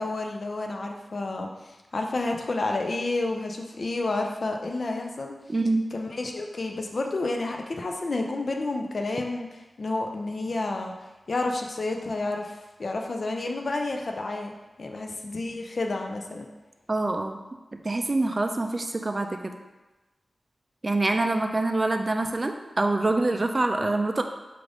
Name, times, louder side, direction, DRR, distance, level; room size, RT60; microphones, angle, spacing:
voice 1, 0.0-5.3 5.9-10.9 11.3-14.5 14.8-16.5, left 2 dB, 60° left, 2 dB, 0.4 m, -30 dB
voice 2, 5.5-5.8 16.9-17.4 17.8-19.5 20.8-24.2, right 2 dB, 35° right, 5 dB, 0.4 m, -25 dB
5.0 x 2.5 x 3.3 m, 1.1 s
wide cardioid pair, 80°, 0 cm